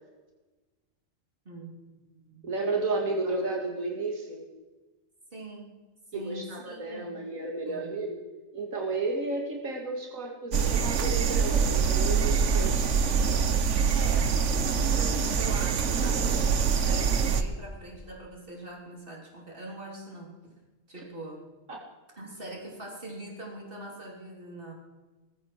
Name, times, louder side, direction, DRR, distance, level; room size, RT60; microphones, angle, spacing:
voice 1, 1.5-2.5 3.2-3.4 5.3-5.7 6.1-7.2 7.7-8.0 13.9-20.3 20.9-21.5 22.2-24.7, right 1 dB, 40° right, -1 dB, 4.0 m, -43 dB
voice 2, 2.4-4.4 6.1-8.2 8.5-12.9 21.7-21.8, right 3 dB, 85° right, 0 dB, 2.6 m, -32 dB
sound 1, 10.5-17.4, right 6 dB, 65° right, 1.3 m, -25 dB
20.0 x 14.5 x 4.8 m, 1.2 s
omnidirectional pair, 1.4 m